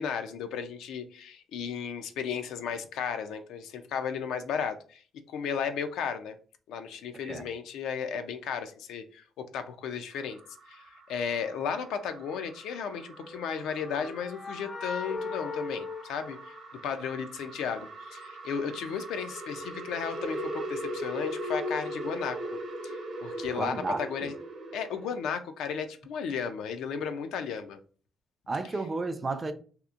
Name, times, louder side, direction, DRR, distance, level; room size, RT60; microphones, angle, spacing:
voice 1, 0.0-5.0 5.3-6.4 6.7-10.4 10.7-16.6 16.8-22.4 22.8-24.3 24.7-27.8, left 6 dB, 85° left, 0.3 m, -34 dB
sound 1, 10.1-25.3, right 1 dB, 60° right, 0.8 m, -40 dB
sound 2, 13.2-17.1, left 4 dB, 60° left, 0.7 m, -39 dB
voice 2, 23.5-24.3 28.5-29.5, right 3 dB, 30° right, 0.4 m, -33 dB
2.8 x 2.1 x 2.4 m
cardioid pair, 90°, 0 cm